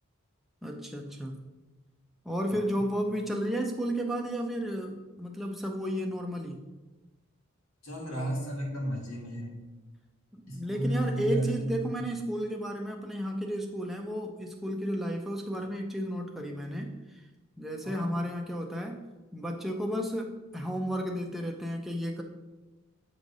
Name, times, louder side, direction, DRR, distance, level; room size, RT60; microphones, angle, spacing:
voice 1, 0.6-1.4 2.2-6.6 10.3-17.2 17.6-19.0 19.3-22.2, equal, ahead, 1 dB, 0.5 m, -33 dB
voice 2, 7.8-9.5 10.5-11.5 17.8-18.0, equal, 75° left, -1 dB, 1.7 m, -32 dB
7.5 x 3.2 x 5.3 m, 1.1 s
head